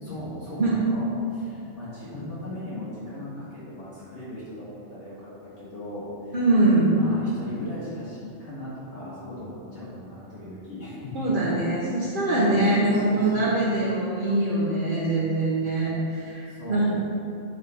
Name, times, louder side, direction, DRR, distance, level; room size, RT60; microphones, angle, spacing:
voice 1, 0.0-6.4 6.9-11.1 12.3-13.7 16.5-16.9, left 1 dB, 60° left, -10 dB, 2.0 m, -38 dB
voice 2, 6.3-7.0 11.1-16.9, right 2 dB, 45° right, -8 dB, 1.0 m, -23 dB
7.4 x 3.3 x 4.2 m, 2.7 s
omnidirectional pair, 1.3 m